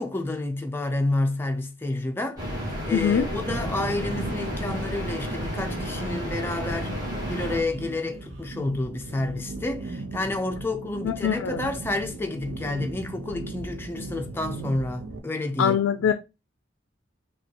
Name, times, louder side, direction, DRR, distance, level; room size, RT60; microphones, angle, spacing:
voice 1, 0.0-2.4 2.9-15.8, left 2 dB, 10° left, 0.4 m, -30 dB
sound 1, 2.4-7.6, equal, 20° right, 1.5 m, -31 dB
voice 2, 2.9-3.3 11.0-11.6 15.6-16.1, left 8 dB, 75° left, 0.3 m, -23 dB
sound 2, 3.3-15.2, right 2 dB, 70° right, 0.7 m, -38 dB
5.3 x 2.3 x 2.8 m
head